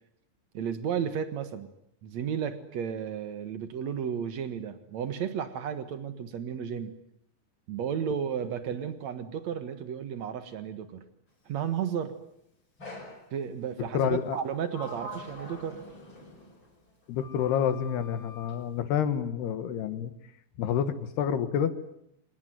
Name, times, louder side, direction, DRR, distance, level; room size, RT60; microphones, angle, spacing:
voice 1, 0.5-1.7 2.0-6.9 7.7-11.0 11.4-12.1 13.3-15.8, right 8 dB, 70° right, 10 dB, 1.6 m, -33 dB
Sliding door, 12.8-13.3 14.3-16.7 17.2-18.6, left 1 dB, 25° left, 6.2 m, -44 dB
voice 2, 13.8-14.4 17.1-20.1 20.6-21.7, left 8 dB, 65° left, 11 dB, 3.3 m, -28 dB
26.0 x 20.5 x 9.6 m, 0.72 s
omnidirectional pair, 5.5 m